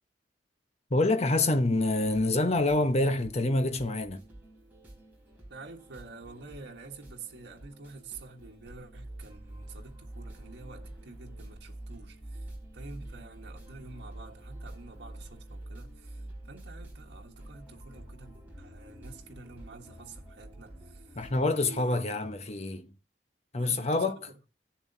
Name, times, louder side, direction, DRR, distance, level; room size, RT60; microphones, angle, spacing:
voice 1, 0.9-4.2 21.1-22.9 23.5-24.2, left 2 dB, 40° left, 1.0 m, -26 dB
sound 1, 2.0-21.4, right 1 dB, 10° right, 4.2 m, -47 dB
voice 2, 5.5-12.5 12.7-21.2 21.5-22.0 23.6-24.1, right 3 dB, 90° right, 1.4 m, -48 dB
17.0 x 7.3 x 2.7 m
head